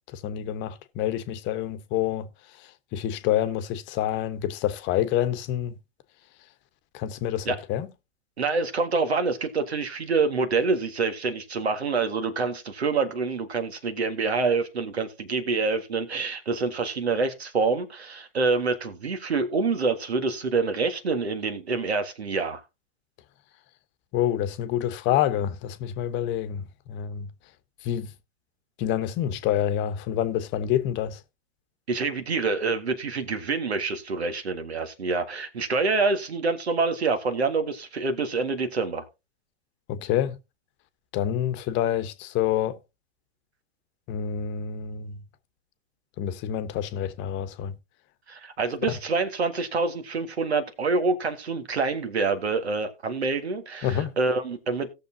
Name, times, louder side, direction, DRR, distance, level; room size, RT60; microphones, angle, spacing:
voice 1, 0.1-2.3 2.6-5.7 6.9-7.9 24.1-27.3 27.8-28.1 28.8-31.2 39.9-40.4 41.1-42.8 44.1-45.2 46.2-47.7 53.8-54.1, left 11 dB, 35° left, 1.0 m, -27 dB
voice 2, 8.4-22.6 31.9-39.1 48.3-54.9, right 4 dB, 90° right, 1.8 m, -26 dB
17.5 x 6.7 x 2.7 m
hypercardioid pair, 110°, 31 cm